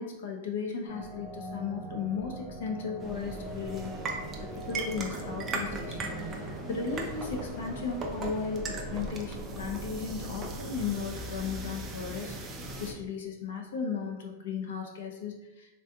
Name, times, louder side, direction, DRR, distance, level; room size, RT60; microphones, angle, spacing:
voice 1, 0.0-3.9 4.4-12.4 12.8-15.7, left 5 dB, 65° left, 2 dB, 0.5 m, -36 dB
sound 1, 0.9-9.1, equal, 10° left, 0.7 m, -44 dB
sound 2, 3.0-12.9, right 2 dB, 15° right, 0.3 m, -38 dB
3.5 x 2.3 x 2.7 m, 1.0 s
supercardioid pair, 175°, 0 cm